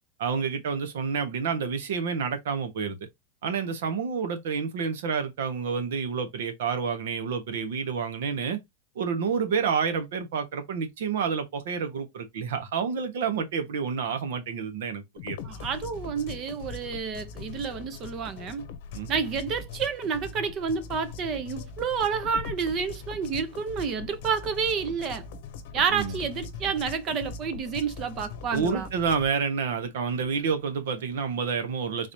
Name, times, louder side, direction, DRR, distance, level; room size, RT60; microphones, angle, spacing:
voice 1, 0.2-3.0 3.4-8.6 8.9-15.4 18.9-19.1 25.9-26.2 28.5-32.1, right 6 dB, 75° right, 1.2 m, -29 dB
sound 1, 15.2-29.3, left 5 dB, 65° left, 0.8 m, -41 dB
voice 2, 15.4-18.6 19.1-25.2 25.7-28.9, right 6 dB, 35° right, 0.8 m, -29 dB
3.9 x 2.6 x 3.1 m
supercardioid pair, 140°, 0 cm